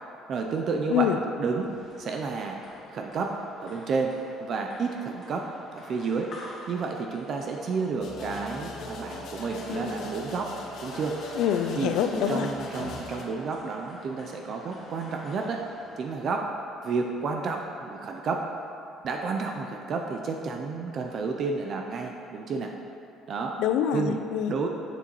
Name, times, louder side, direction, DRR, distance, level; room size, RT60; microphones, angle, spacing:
voice 1, 0.3-1.1 1.4-1.7 2.0-2.6 2.9-3.3 3.6-4.1 4.4-5.5 5.7-6.3 6.7-10.5 10.8-11.2 11.7-11.9 12.3-15.6 16.0-16.5 16.8-18.5 19.0-22.7 23.3-23.6 23.9-24.7, right 4 dB, 45° right, 2 dB, 0.4 m, -31 dB
sound 1, 1.5-16.4, left 1 dB, 45° left, 1.4 m, -48 dB
sound 2, 8.0-13.2, left 2 dB, 65° left, 0.9 m, -38 dB
voice 2, 11.4-12.5 23.6-24.6, left 9 dB, 80° left, 8 dB, 0.4 m, -25 dB
7.0 x 6.7 x 3.0 m, 2.7 s
cardioid pair, 135°, 0 cm